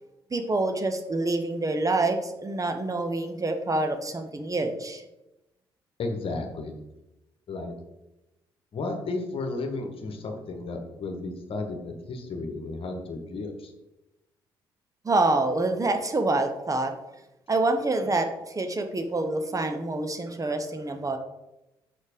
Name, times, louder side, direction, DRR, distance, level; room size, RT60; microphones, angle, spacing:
voice 1, 0.3-5.0 15.0-16.9 17.5-21.2, right 2 dB, 25° right, 6 dB, 1.1 m, -26 dB
voice 2, 6.0-6.8 7.5-7.7 8.7-13.7, left 3 dB, 50° left, 5 dB, 1.4 m, -33 dB
6.5 x 5.5 x 5.1 m, 0.96 s
figure-of-eight pair, 45°, 12 cm